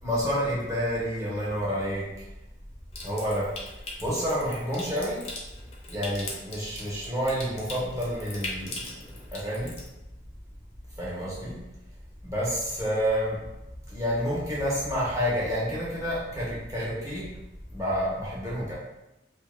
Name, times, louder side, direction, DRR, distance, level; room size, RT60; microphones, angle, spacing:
voice 1, 0.0-2.0 3.0-3.5 4.0-5.2 5.9-9.0 9.3-9.7 11.0-11.6 12.2-13.4 13.9-17.2 17.7-18.8, equal, 15° right, -8 dB, 0.8 m, -29 dB
Water tap faucet / Sink (filling or washing) / Trickle dribble, 2.9-9.9, left 2 dB, 35° left, 0.4 m, -41 dB
2.7 x 2.1 x 2.4 m, 0.96 s
head